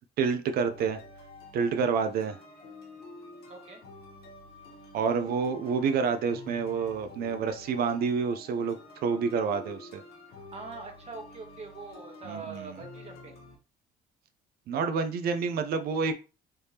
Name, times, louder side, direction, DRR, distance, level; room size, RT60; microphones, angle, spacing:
voice 1, 0.2-1.0 1.5-2.4 4.9-8.8 9.0-10.0 12.3-12.7 14.7-16.1, right 5 dB, 65° right, 8 dB, 0.5 m, -28 dB
sound 1, 0.6-13.6, left 2 dB, 70° left, 1.2 m, -49 dB
voice 2, 3.5-3.8 10.3-13.4, right 4 dB, 40° right, 3 dB, 1.1 m, -43 dB
3.3 x 3.3 x 2.8 m, 0.33 s
cardioid pair, 110°, 17 cm